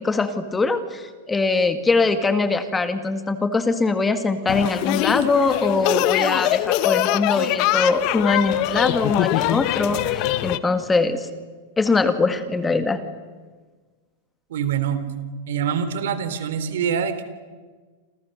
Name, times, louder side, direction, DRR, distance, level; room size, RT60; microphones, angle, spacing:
voice 1, 0.0-11.3 11.8-13.0, left 3 dB, 10° left, 9 dB, 1.9 m, -22 dB
sound 1, 4.5-10.6, left 15 dB, 50° left, 1.2 m, -22 dB
voice 2, 14.5-15.0 15.5-17.2, right 8 dB, 80° right, 12 dB, 3.3 m, -24 dB
29.0 x 27.0 x 6.7 m, 1.4 s
supercardioid pair, 135°, 0 cm